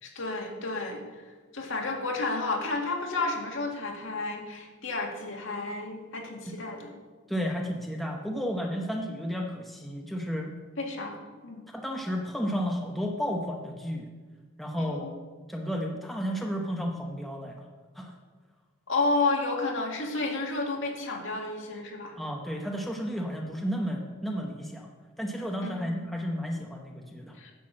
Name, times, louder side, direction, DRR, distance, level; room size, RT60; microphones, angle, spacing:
voice 1, 0.0-1.0 1.5-6.9 10.8-11.2 11.4-11.6 14.8-15.1 18.9-22.2 25.6-26.0 27.4-27.5, left 3 dB, 70° left, 1 dB, 1.9 m, -31 dB
voice 2, 7.3-10.5 11.7-14.1 14.6-15.1 15.5-17.6 17.9-18.1 22.2-24.9 25.2-27.4, equal, ahead, 0 dB, 0.8 m, -32 dB
10.0 x 6.1 x 7.5 m, 1.4 s
head